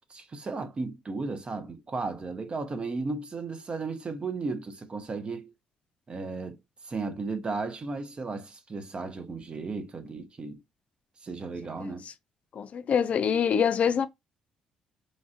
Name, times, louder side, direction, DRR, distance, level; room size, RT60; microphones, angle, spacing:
voice 1, 0.1-5.5 6.1-6.6 6.8-10.6 11.2-12.1, right 3 dB, 40° right, 0.7 m, -35 dB
voice 2, 12.5-14.1, left 7 dB, 55° left, 0.4 m, -25 dB
3.2 x 2.5 x 2.4 m
hypercardioid pair, 55°, 3 cm